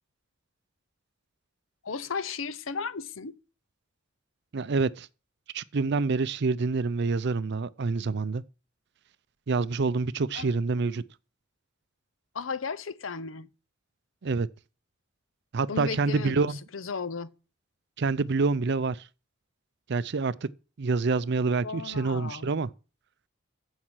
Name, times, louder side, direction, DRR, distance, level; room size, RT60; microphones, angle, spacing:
voice 1, 1.8-3.4 10.3-10.5 12.3-13.5 15.7-17.3 21.6-22.5, left 5 dB, 90° left, 0.8 m, -35 dB
voice 2, 4.5-5.1 5.5-8.4 9.5-11.0 14.2-14.5 15.5-16.6 18.0-19.0 19.9-20.5 20.8-22.7, right 4 dB, 60° right, 0.5 m, -27 dB
15.0 x 5.6 x 6.4 m
head